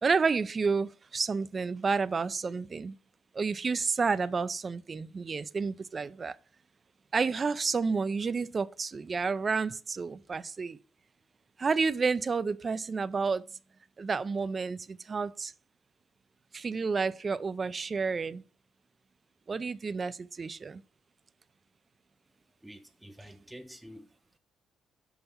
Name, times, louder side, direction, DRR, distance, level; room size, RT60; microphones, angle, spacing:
voice 1, 0.0-2.9 3.3-6.3 7.1-10.8 11.6-13.4 14.0-15.5 16.5-18.4 19.5-20.8, right 4 dB, 35° right, 0.4 m, -30 dB
voice 2, 22.6-24.1, equal, 5° right, 0.7 m, -48 dB
5.8 x 5.6 x 5.5 m
cardioid pair, 90°, 0 cm